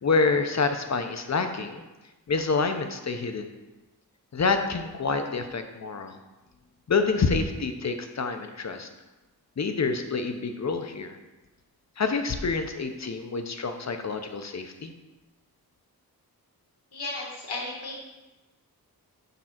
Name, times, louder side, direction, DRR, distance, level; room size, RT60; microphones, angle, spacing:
voice 1, 0.0-1.8 2.3-3.5 4.3-6.2 6.9-8.9 9.6-11.2 12.0-14.9, left 4 dB, 45° left, 7 dB, 0.7 m, -27 dB
voice 2, 16.9-18.0, left 2 dB, 90° left, -2 dB, 1.5 m, -34 dB
6.8 x 3.7 x 5.8 m, 1.1 s
wide cardioid pair, 120°, 38 cm